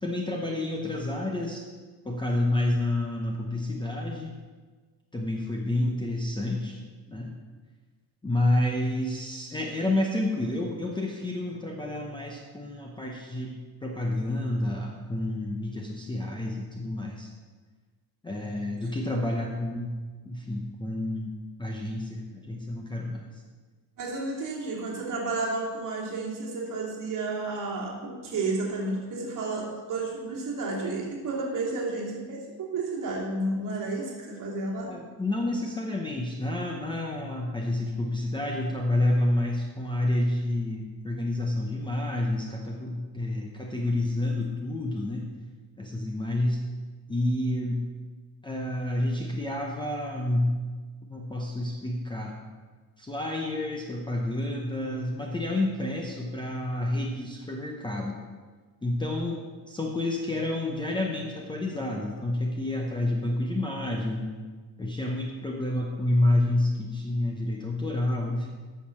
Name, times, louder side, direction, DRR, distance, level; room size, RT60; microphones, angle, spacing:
voice 1, 0.0-1.6 2.0-4.4 5.1-6.8 7.1-7.3 8.2-17.3 18.2-19.9 20.2-23.4 34.9-45.3 45.8-46.6 47.1-47.8 48.4-50.6 51.1-52.4 53.0-58.2 58.8-59.4 59.7-64.4 64.8-68.5, left 1 dB, 10° left, 0 dB, 0.7 m, -29 dB
voice 2, 24.0-35.0, right 3 dB, 45° right, -3 dB, 2.4 m, -31 dB
8.6 x 6.6 x 6.4 m, 1.4 s
cardioid pair, 165°, 43 cm